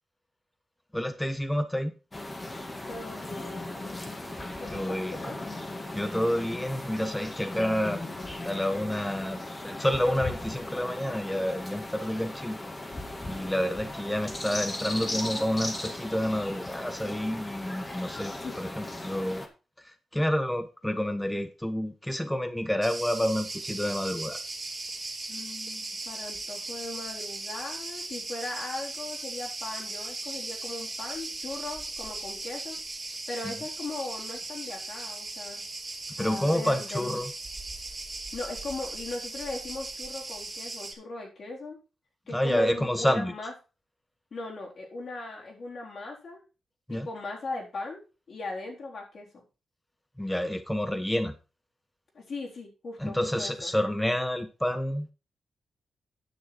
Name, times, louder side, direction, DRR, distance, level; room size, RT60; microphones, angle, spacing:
voice 1, 0.9-1.9 4.7-5.1 5.9-8.0 8.4-12.6 13.2-19.4 20.1-24.4 33.4-33.5 36.2-37.3 42.3-43.3 46.9-47.1 50.2-51.3 53.0-55.1, equal, 10° left, 9 dB, 1.1 m, -29 dB
sound 1, 2.1-19.5, left 2 dB, 25° left, 1.9 m, -37 dB
voice 2, 2.9-4.0 4.6-5.4 18.4-18.6 25.3-32.8 33.3-35.6 36.2-37.2 38.3-41.8 42.3-43.5 44.3-46.4 46.9-48.0 48.3-49.3 52.1-53.7, left 2 dB, 60° left, -2 dB, 4.0 m, -38 dB
Cricket, 22.8-40.9, right 2 dB, 30° right, 3.0 m, -38 dB
9.7 x 6.8 x 4.4 m, 0.31 s
cardioid pair, 75°, 0 cm